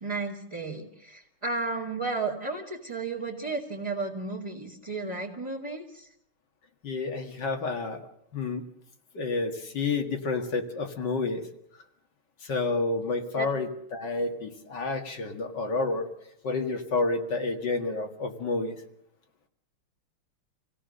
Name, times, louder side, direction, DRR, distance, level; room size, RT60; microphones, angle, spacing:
voice 1, 0.0-6.1 13.3-13.5, right 3 dB, 15° right, -5 dB, 2.3 m, -33 dB
voice 2, 6.8-8.0 8.3-8.6 9.1-11.4 12.4-16.1 16.4-18.8, left 3 dB, 55° left, 4 dB, 2.4 m, -29 dB
27.0 x 17.0 x 6.6 m, 0.74 s
omnidirectional pair, 2.4 m